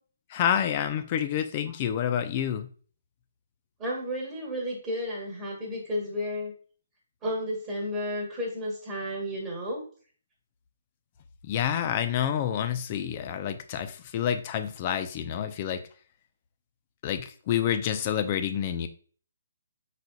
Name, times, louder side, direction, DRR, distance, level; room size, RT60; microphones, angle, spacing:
voice 1, 0.3-2.7 11.4-15.8 17.0-18.9, left 9 dB, 30° left, 10 dB, 0.5 m, -28 dB
voice 2, 3.8-6.5 7.2-9.8, equal, 15° right, -4 dB, 1.3 m, -32 dB
5.0 x 4.2 x 2.3 m, 0.43 s
hypercardioid pair, 155°, 0 cm